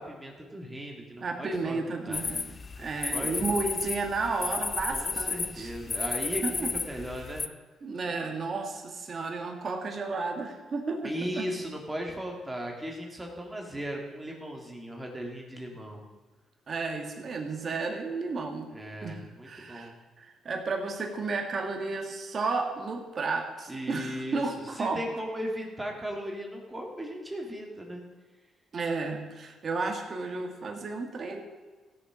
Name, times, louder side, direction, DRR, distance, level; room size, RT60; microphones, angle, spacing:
voice 1, 0.0-2.2 2.8-3.6 4.9-7.4 11.0-16.0 18.7-19.9 23.7-24.4 24.8-28.0, equal, 15° right, 0 dB, 2.1 m, -37 dB
voice 2, 1.2-2.5 2.8-5.7 6.4-6.7 7.8-11.5 16.7-18.7 19.0-19.9 20.2-25.0 28.7-31.4, right 3 dB, 45° right, 3 dB, 1.8 m, -32 dB
sound 1, 2.1-7.5, left 5 dB, 35° left, 0.5 m, -33 dB
16.0 x 7.1 x 5.0 m, 1.3 s
cardioid pair, 90°, 0 cm